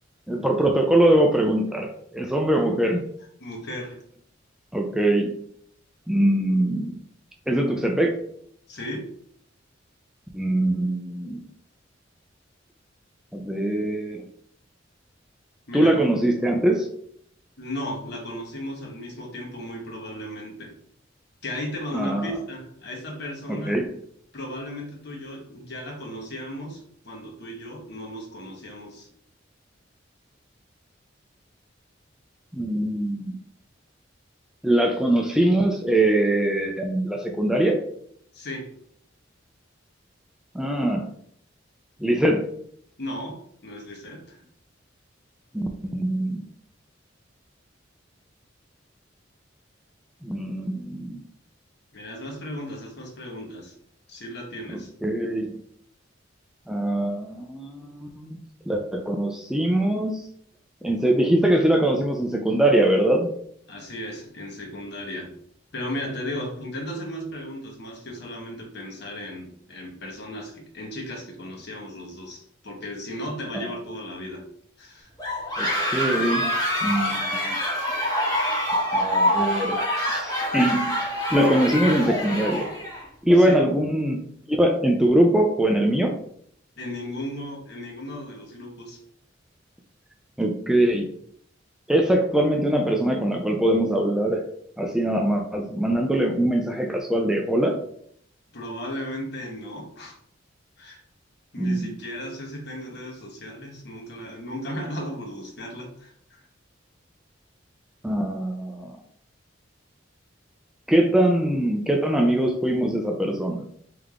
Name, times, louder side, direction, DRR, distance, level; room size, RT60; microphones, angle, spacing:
voice 1, 0.3-3.0 4.7-5.3 6.1-6.9 7.5-8.2 10.3-11.4 13.3-14.3 15.7-16.9 21.9-22.3 23.5-23.8 32.5-33.4 34.6-37.8 40.5-41.1 42.0-42.5 45.5-46.4 50.2-51.2 54.7-55.6 56.7-58.4 58.7-60.2 60.8-63.3 73.5-73.7 75.6-76.6 76.8-77.6 78.9-79.8 80.1-81.0 81.3-82.7 83.2-86.1 90.4-91.1 91.9-94.4 94.8-97.8 101.6-101.9 108.0-108.9 110.9-113.6, right 1 dB, 5° right, 2 dB, 0.4 m, -22 dB
voice 2, 3.4-4.0 8.7-9.1 15.7-16.0 17.6-20.8 21.4-23.8 24.3-29.1 38.3-38.7 43.0-44.5 51.9-53.7 54.1-54.9 63.7-65.3 65.7-74.5 74.8-75.1 83.4-83.6 86.8-89.0 98.5-100.2 100.8-101.0 101.5-106.5, left 1 dB, 60° left, 0 dB, 1.2 m, -35 dB
sound 1, 75.2-83.0, equal, 20° left, 1.3 m, -25 dB
3.5 x 3.3 x 3.6 m, 0.66 s
head